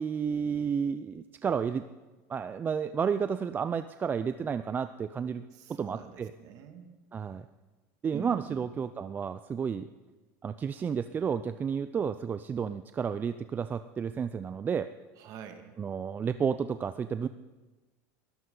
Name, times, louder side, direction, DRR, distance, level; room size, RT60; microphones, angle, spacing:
voice 1, 0.0-1.8 2.3-5.4 5.7-6.3 7.1-7.5 8.0-9.9 10.4-14.9 15.8-17.3, right 6 dB, 25° right, 11 dB, 0.4 m, -31 dB
voice 2, 5.5-7.0 8.1-8.6 15.2-15.7, right 8 dB, 50° right, 6 dB, 2.0 m, -45 dB
21.0 x 14.0 x 3.9 m, 1.2 s
supercardioid pair, 125°, 8 cm